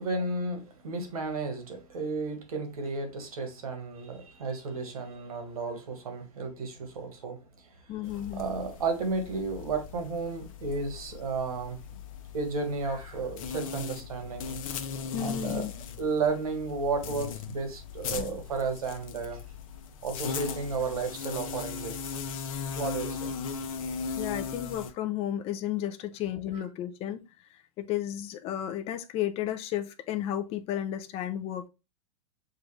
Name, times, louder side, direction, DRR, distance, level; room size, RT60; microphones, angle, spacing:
voice 1, 0.0-7.4 8.0-11.8 12.3-14.6 15.2-15.7 16.0-19.4 20.0-22.1 22.7-23.3 23.6-23.7, right 4 dB, 90° right, 1.5 m, -33 dB
voice 2, 7.9-8.5 15.1-15.7 18.1-18.4 24.2-27.2 27.5-31.7, left 11 dB, 35° left, 0.5 m, -33 dB
sound 1, 8.0-24.9, left 6 dB, 70° left, 0.7 m, -38 dB
6.5 x 2.5 x 3.2 m
hypercardioid pair, 125°, 18 cm